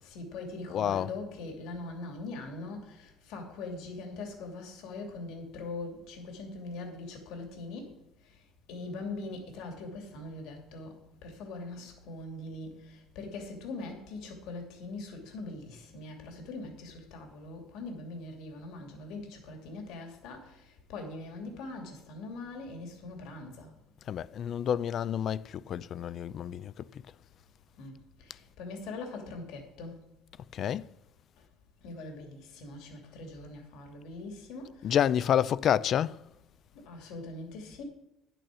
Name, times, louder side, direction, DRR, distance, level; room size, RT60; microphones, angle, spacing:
voice 1, 0.0-7.9 8.2-8.3 8.7-23.7 27.8-30.0 31.8-35.0 36.8-37.8, left 3 dB, 80° left, 2.7 m, -42 dB
voice 2, 0.7-1.2 24.1-26.9 30.5-30.9 34.8-36.2, left 9 dB, 45° left, 0.4 m, -29 dB
11.0 x 9.0 x 6.2 m
cardioid pair, 145°, 0 cm